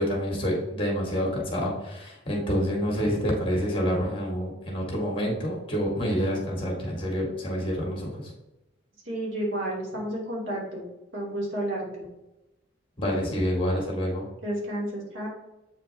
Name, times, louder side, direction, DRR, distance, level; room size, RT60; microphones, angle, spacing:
voice 1, 0.0-8.3 13.0-14.2, equal, 25° left, -2 dB, 2.0 m, -27 dB
voice 2, 9.0-10.8 11.1-12.1 14.4-15.3, right 1 dB, 80° right, -3 dB, 2.7 m, -31 dB
8.3 x 4.6 x 3.5 m, 0.94 s
head